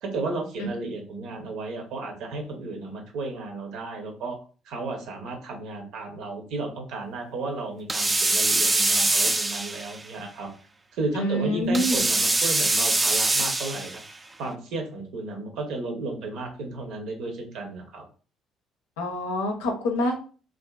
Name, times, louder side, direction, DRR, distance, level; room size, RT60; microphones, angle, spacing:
voice 1, 0.0-4.4 4.6-10.5 10.9-14.0 14.4-18.0, right 3 dB, 70° right, 3 dB, 0.7 m, -33 dB
sound 1, 7.9-10.0 11.7-14.0, right 2 dB, 20° right, 0.3 m, -23 dB
voice 2, 11.1-12.0 19.0-20.2, equal, 90° left, 2 dB, 0.5 m, -26 dB
2.4 x 2.4 x 2.3 m, 0.39 s
hypercardioid pair, 60°, 0 cm